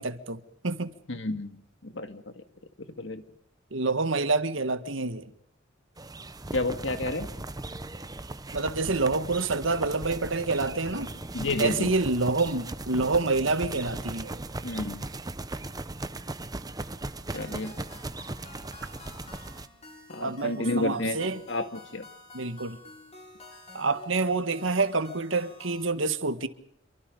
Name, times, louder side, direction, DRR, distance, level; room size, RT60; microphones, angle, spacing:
voice 1, 0.0-0.9 3.7-5.3 8.5-11.1 11.6-14.4 20.2-21.4 22.3-22.8 23.7-26.5, right 3 dB, 80° right, 1.7 m, -27 dB
voice 2, 1.1-1.6 1.8-2.2 3.0-3.2 6.5-7.3 11.3-11.9 14.6-15.0 17.3-17.7 20.1-22.0, left 2 dB, 65° left, 2.2 m, -30 dB
sound 1, 6.0-19.7, right 2 dB, 20° right, 0.9 m, -38 dB
sound 2, 17.3-25.9, left 2 dB, 35° left, 6.4 m, -50 dB
28.0 x 24.0 x 5.4 m
head